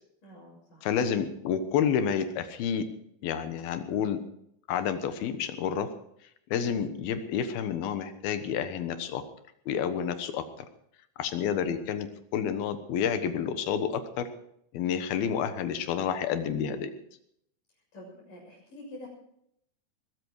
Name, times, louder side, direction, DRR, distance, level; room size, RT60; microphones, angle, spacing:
voice 1, 0.2-0.9 14.8-15.1 17.9-19.1, left 1 dB, 60° left, -3 dB, 8.3 m, -47 dB
voice 2, 0.8-2.8 3.2-4.2 4.7-5.9 6.5-9.2 9.7-10.4 11.2-14.3 14.7-16.9, left 8 dB, 85° left, 10 dB, 3.1 m, -29 dB
21.0 x 13.0 x 4.7 m, 0.72 s
omnidirectional pair, 4.2 m